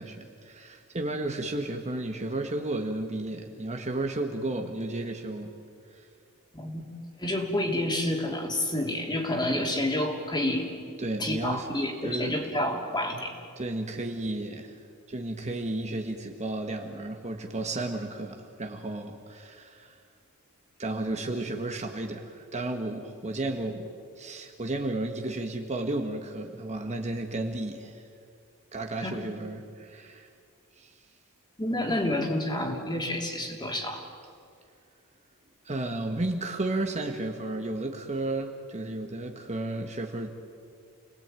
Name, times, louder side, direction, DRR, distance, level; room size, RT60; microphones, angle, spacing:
voice 1, 0.0-5.5 11.0-11.7 12.0-12.3 13.6-14.8 15.1-19.9 20.8-23.9 24.2-28.0 28.7-30.3 30.8-30.9 35.6-40.3, right 2 dB, 30° right, 4 dB, 1.7 m, -33 dB
voice 2, 6.5-6.9 7.2-10.7 11.2-13.3 29.0-29.2 31.6-34.0, left 1 dB, 20° left, 2 dB, 3.3 m, -29 dB
29.0 x 19.5 x 9.2 m, 2.3 s
head